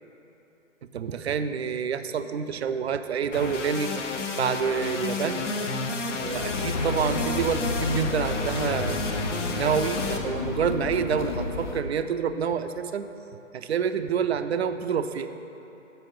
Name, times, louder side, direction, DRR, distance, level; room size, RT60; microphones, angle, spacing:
voice 1, 0.9-4.0 4.3-5.5 6.2-9.0 9.6-13.1 13.5-15.3, right 7 dB, 55° right, 10 dB, 0.4 m, -28 dB
sound 1, 3.3-10.2, left 2 dB, 65° left, 0.9 m, -30 dB
sound 2, 6.0-11.8, left 4 dB, 40° left, 0.4 m, -32 dB
8.0 x 5.6 x 5.1 m, 3.0 s
figure-of-eight pair, 130°, 40 cm